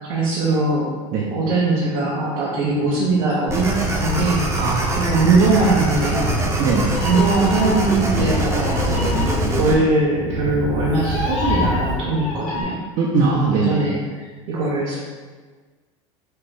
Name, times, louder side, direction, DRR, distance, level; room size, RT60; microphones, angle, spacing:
voice 1, 0.0-0.9 1.3-4.4 5.0-6.4 7.0-9.1 9.6-12.8 13.5-14.0 14.5-15.0, right 3 dB, 85° right, -8 dB, 1.0 m, -20 dB
sound 1, 3.5-9.7, right 1 dB, 15° right, 0.7 m, -23 dB
voice 2, 4.6-5.2 6.6-6.9 13.0-13.8, right 4 dB, 55° right, -3 dB, 0.7 m, -20 dB
Meow, 5.9-12.6, left 1 dB, 70° left, 1.3 m, -26 dB
4.4 x 2.6 x 3.3 m, 1.4 s
supercardioid pair, 100°, 17 cm